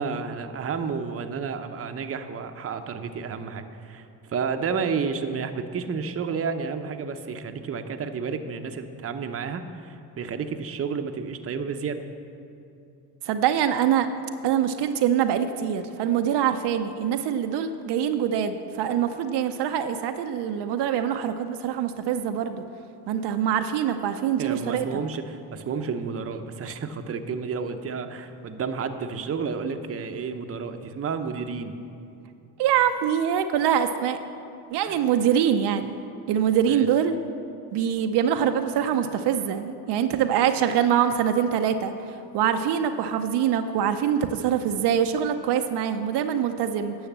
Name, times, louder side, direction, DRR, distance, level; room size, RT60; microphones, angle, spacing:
voice 1, 0.0-4.1 4.3-12.0 24.4-31.8 34.8-35.0 36.7-36.9, right 5 dB, 35° right, 7 dB, 0.8 m, -31 dB
voice 2, 13.2-14.1 14.4-22.6 23.1-24.9 32.6-34.2 34.7-35.9 36.3-37.2 37.7-47.0, right 9 dB, 70° right, 7 dB, 0.7 m, -24 dB
10.5 x 6.4 x 7.3 m, 2.7 s
supercardioid pair, 85°, 42 cm